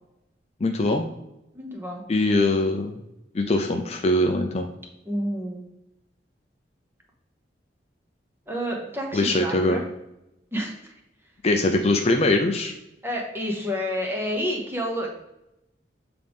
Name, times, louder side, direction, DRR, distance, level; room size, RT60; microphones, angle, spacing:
voice 1, 0.6-1.1 2.1-3.0 3.3-4.7 9.1-9.8 11.4-12.7, left 2 dB, 35° left, 4 dB, 0.4 m, -22 dB
voice 2, 1.5-2.0 5.0-5.7 8.5-9.8 10.5-10.7 13.0-15.1, equal, 10° right, 0 dB, 1.0 m, -29 dB
7.4 x 3.9 x 3.5 m, 0.88 s
head